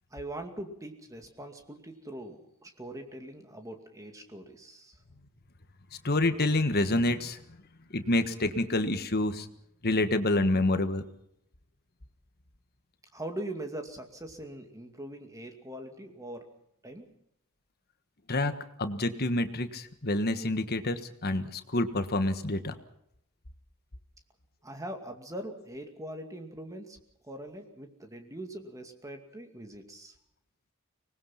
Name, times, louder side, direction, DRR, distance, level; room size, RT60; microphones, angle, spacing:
voice 1, 0.1-5.0 13.1-16.5 16.8-17.1 24.6-27.0 27.2-30.1, right 1 dB, 15° right, 5 dB, 2.4 m, -42 dB
voice 2, 6.0-7.4 7.9-9.5 9.8-11.0 18.3-18.5 18.8-22.8, left 2 dB, 45° left, 9 dB, 1.5 m, -27 dB
24.5 x 20.0 x 5.8 m, 0.76 s
head